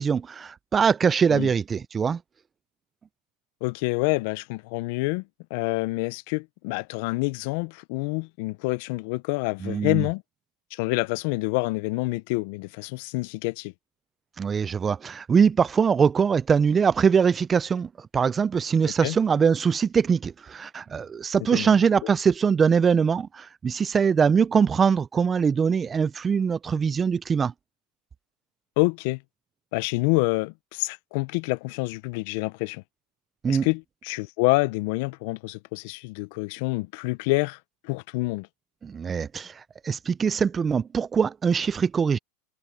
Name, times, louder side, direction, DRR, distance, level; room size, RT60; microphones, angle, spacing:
voice 1, 0.0-2.2 9.6-10.1 14.4-27.5 33.4-33.7 38.8-39.5 39.8-42.2, right 6 dB, 20° right, 0.4 m, -22 dB
voice 2, 3.6-5.2 5.5-10.2 10.7-13.7 19.0-19.2 21.5-21.7 28.8-29.2 29.7-32.8 33.5-37.6 37.8-38.5, left 26 dB, 60° left, 0.5 m, -27 dB
supercardioid pair, 130°, 0 cm